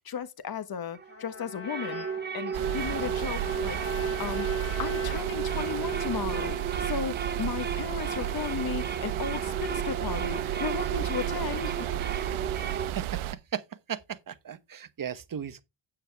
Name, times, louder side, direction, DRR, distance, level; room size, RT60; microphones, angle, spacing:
voice 1, 0.0-2.1 2.3-3.8 4.2-11.9, left 7 dB, 45° left, 1.4 m, -35 dB
sound 1, 0.9-12.9, right 7 dB, 20° right, 0.6 m, -34 dB
Trumpet, 1.1-9.2, left 5 dB, 25° left, 6.4 m, -43 dB
sound 2, 2.5-13.4, right 13 dB, 75° right, 1.0 m, -33 dB
voice 2, 12.8-13.2 13.5-13.6 13.9-15.6, right 8 dB, 40° right, 1.1 m, -36 dB
9.0 x 8.6 x 3.5 m
cardioid pair, 80°, 49 cm